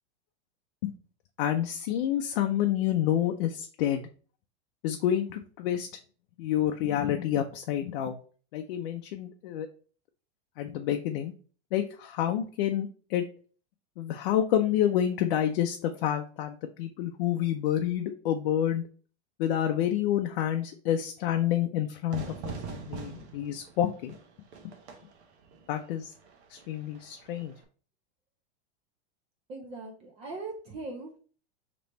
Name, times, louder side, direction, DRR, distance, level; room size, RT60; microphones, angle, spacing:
voice 1, 1.4-4.1 4.8-5.9 6.4-8.2 8.5-9.7 10.6-11.3 11.7-13.3 14.0-18.8 19.4-24.2 25.7-26.1 26.5-27.5, left 11 dB, 55° left, 5 dB, 0.5 m, -28 dB
Fire / Fireworks, 22.1-27.6, right 5 dB, 90° right, 1.0 m, -43 dB
voice 2, 29.5-31.2, right 3 dB, 20° right, 2 dB, 0.4 m, -40 dB
3.3 x 3.0 x 4.0 m, 0.41 s
supercardioid pair, 155°, 33 cm